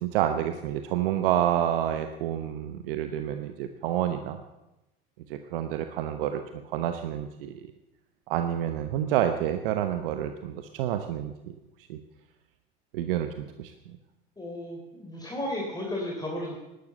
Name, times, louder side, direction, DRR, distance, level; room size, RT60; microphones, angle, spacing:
voice 1, 0.0-4.4 5.3-7.6 8.3-11.5 11.9-12.0 12.9-13.3 13.6-13.7, right 11 dB, 70° right, 8 dB, 1.0 m, -28 dB
voice 2, 14.4-16.6, left 1 dB, 15° left, -2 dB, 3.6 m, -34 dB
12.0 x 12.0 x 8.0 m, 0.98 s
hypercardioid pair, 80°, 29 cm